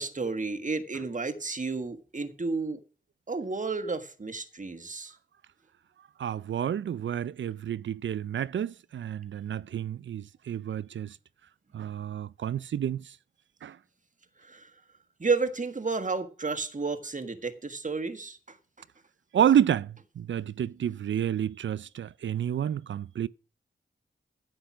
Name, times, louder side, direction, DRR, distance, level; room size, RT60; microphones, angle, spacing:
voice 1, 0.0-2.8 3.3-5.1 14.5-14.7 15.2-18.5, right 4 dB, 40° right, 1.6 m, -31 dB
voice 2, 6.2-11.2 11.7-13.2 13.6-13.8 19.3-23.3, right 9 dB, 75° right, 0.4 m, -29 dB
10.5 x 7.8 x 6.1 m
cardioid pair, 45°, 20 cm